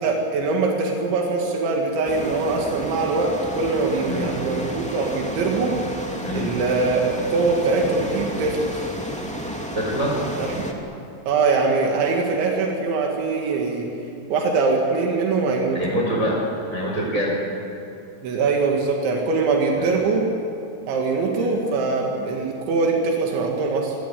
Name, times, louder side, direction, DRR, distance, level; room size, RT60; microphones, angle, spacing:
voice 1, 0.0-5.7 6.3-7.0 7.3-8.8 10.4-10.6 11.3-13.9 14.3-15.8 18.2-20.3 20.9-24.0, right 3 dB, 85° right, 1 dB, 4.6 m, -22 dB
sound 1, 2.0-10.7, equal, 5° left, 1.2 m, -32 dB
voice 2, 9.7-10.2 15.7-17.3 19.8-20.1 21.3-21.5, equal, 15° right, -4 dB, 4.9 m, -25 dB
29.0 x 21.5 x 8.5 m, 2.8 s
omnidirectional pair, 5.1 m